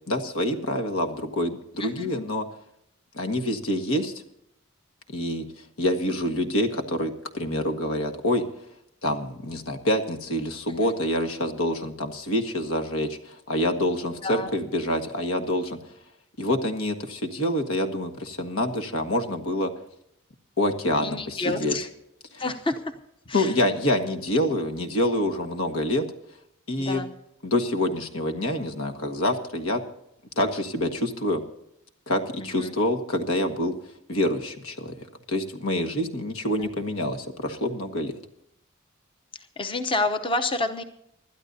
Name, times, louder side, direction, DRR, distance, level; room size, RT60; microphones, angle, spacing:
voice 1, 0.1-2.5 3.1-4.1 5.1-5.4 5.8-8.4 9.0-15.8 16.4-19.7 20.6-21.8 22.3-22.4 23.3-26.0 26.7-27.0 27.4-29.8 30.4-31.4 32.1-33.7 34.1-34.9 35.3-38.1, left 1 dB, 90° left, 5 dB, 1.7 m, -26 dB
voice 2, 1.8-2.1 6.1-6.2 10.7-10.9 14.2-14.5 21.0-21.9 22.4-22.9 23.3-23.5 26.8-27.1 32.4-32.7 36.6-36.7 39.3-40.8, left 2 dB, 25° left, 7 dB, 0.8 m, -29 dB
25.5 x 12.5 x 2.7 m, 0.77 s
head